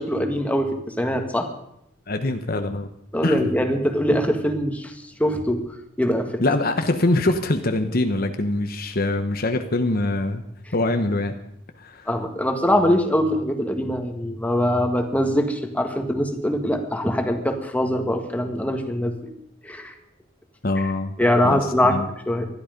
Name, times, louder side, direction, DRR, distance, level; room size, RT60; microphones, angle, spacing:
voice 1, 0.0-1.5 3.1-4.9 5.2-5.6 6.0-6.3 12.1-19.1 19.6-19.9 21.2-22.0 22.3-22.5, equal, 10° left, 4 dB, 1.8 m, -22 dB
voice 2, 2.1-2.9 3.2-3.5 6.4-10.4 10.7-11.3 11.8-12.1 20.6-21.1 21.4-22.1, left 2 dB, 50° left, 7 dB, 1.1 m, -23 dB
20.0 x 13.5 x 5.3 m, 0.74 s
head